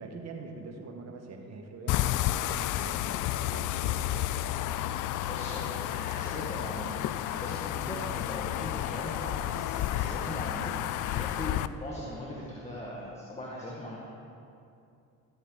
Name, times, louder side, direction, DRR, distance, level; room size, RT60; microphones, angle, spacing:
voice 1, 0.0-4.4, right 3 dB, 50° right, 3 dB, 1.7 m, -44 dB
sound 1, 1.9-11.7, left 13 dB, 65° left, 0.4 m, -31 dB
voice 2, 5.3-14.0, left 1 dB, 20° left, -5 dB, 1.9 m, -40 dB
15.5 x 7.9 x 4.0 m, 2.6 s
supercardioid pair, 80°, 33 cm